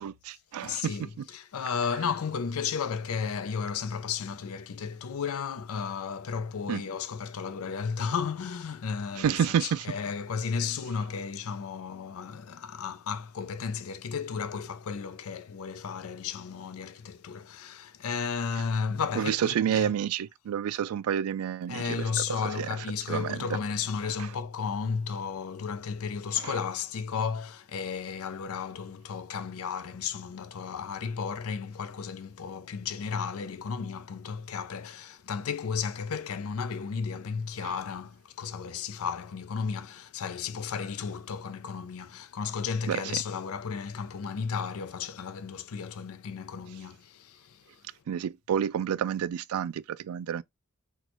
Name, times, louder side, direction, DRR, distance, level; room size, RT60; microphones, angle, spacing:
voice 1, 0.0-1.3 6.7-6.8 9.2-9.9 19.2-22.0 22.6-22.7 23.1-23.5 24.2-24.3 26.4-26.6 37.6-37.7 42.9-43.2 48.1-50.4, right 9 dB, 90° right, 0.3 m, -29 dB
voice 2, 0.6-19.9 21.7-47.6, left 6 dB, 80° left, 0.5 m, -33 dB
4.2 x 2.3 x 2.9 m
head